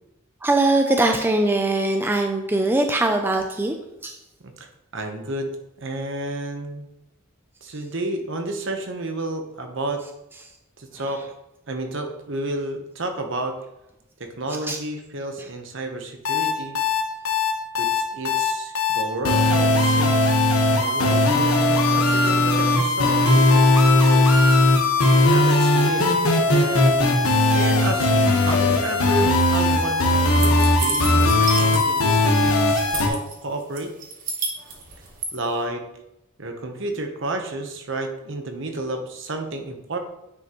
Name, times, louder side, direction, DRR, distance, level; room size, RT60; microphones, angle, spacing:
voice 1, 0.4-3.8 4.0-4.2 14.6-14.8 15.4-15.5, right 2 dB, 10° right, 4 dB, 0.4 m, -21 dB
voice 2, 4.4-5.5 5.8-6.9 7.6-10.0 10.8-11.2 11.7-13.6 14.2-16.8 17.8-20.2 20.8-24.3 25.2-26.2 26.5-27.1 27.5-33.9 35.3-35.9 36.4-40.0, right 2 dB, 60° right, 5 dB, 1.0 m, -31 dB
sound 1, 16.2-33.1, left 2 dB, 85° left, 1.2 m, -18 dB
sound 2, 30.4-32.1 32.4-33.3 33.8-35.3, right 4 dB, 40° right, 1.2 m, -30 dB
9.6 x 5.3 x 3.0 m, 0.88 s
head